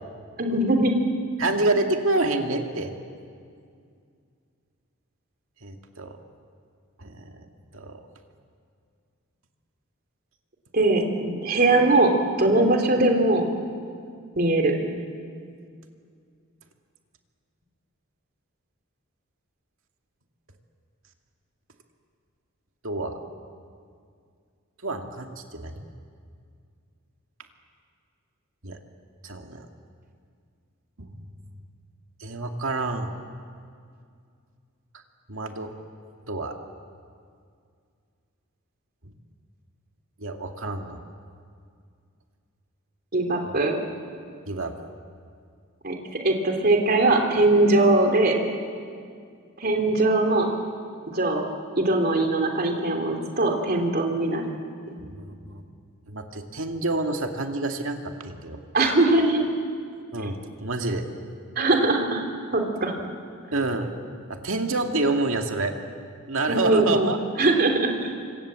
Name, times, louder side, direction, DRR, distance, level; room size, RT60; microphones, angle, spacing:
voice 1, 0.4-0.9 10.7-13.4 14.4-14.7 43.1-43.8 45.8-46.0 46.2-48.4 49.6-50.5 51.1-51.5 51.8-54.5 58.7-59.4 61.5-62.2 62.5-62.9 66.5-68.1, right 2 dB, 45° right, 2 dB, 3.2 m, -21 dB
voice 2, 1.4-2.9 5.6-6.2 7.0-7.5 7.7-8.0 22.8-23.2 24.8-25.9 28.6-28.8 29.2-29.7 31.0-31.1 32.2-33.1 35.3-35.7 36.3-36.6 39.0-39.1 40.2-41.0 44.4-44.9 55.0-55.6 56.1-58.6 60.1-61.1 63.5-63.9 64.3-65.7 66.3-67.2, right 2 dB, 65° right, 3 dB, 2.3 m, -28 dB
28.5 x 25.5 x 7.7 m, 2.2 s
head